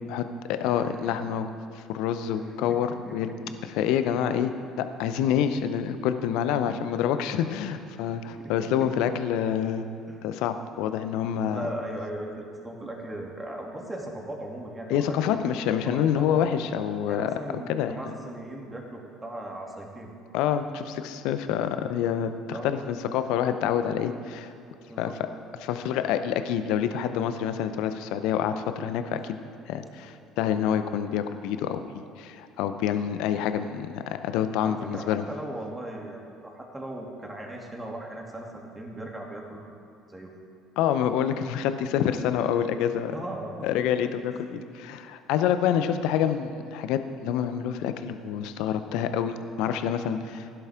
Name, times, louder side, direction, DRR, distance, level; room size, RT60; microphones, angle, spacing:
voice 1, 0.1-3.3 3.6-4.5 4.8-9.8 10.2-11.7 14.9-17.3 17.7-17.9 20.3-24.5 25.0-25.1 25.6-29.4 29.7-35.2 40.8-43.1 43.6-44.5 44.7-50.6, left 9 dB, 65° left, 9 dB, 0.7 m, -27 dB
voice 2, 0.6-1.2 2.3-2.8 3.0-3.5 4.8-5.1 6.7-6.8 8.3-8.9 10.1-10.2 11.5-15.4 15.8-16.4 17.1-20.1 22.5-22.7 24.9-25.2 29.8-30.2 34.6-39.7 40.1-40.3 43.1-43.8 44.3-44.4, right 1 dB, 15° right, -1 dB, 2.7 m, -38 dB
16.5 x 11.5 x 3.7 m, 2.6 s
hypercardioid pair, 60°, 0 cm